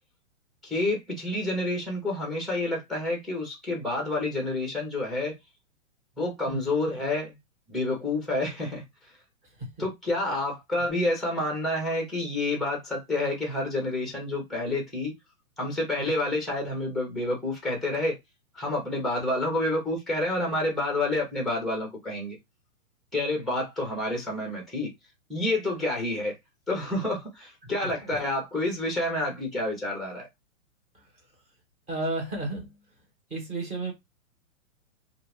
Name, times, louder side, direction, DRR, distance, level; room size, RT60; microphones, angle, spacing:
voice 1, 0.6-5.3 6.2-7.4 7.7-9.1 9.8-15.1 15.6-18.1 18.5-22.4 23.1-24.9 25.3-26.4 26.7-30.3, left 2 dB, ahead, 0.7 m, -29 dB
voice 2, 31.9-32.7 33.3-33.9, right 2 dB, 15° right, 1.1 m, -33 dB
2.5 x 2.4 x 3.3 m
hypercardioid pair, 150°, 41 cm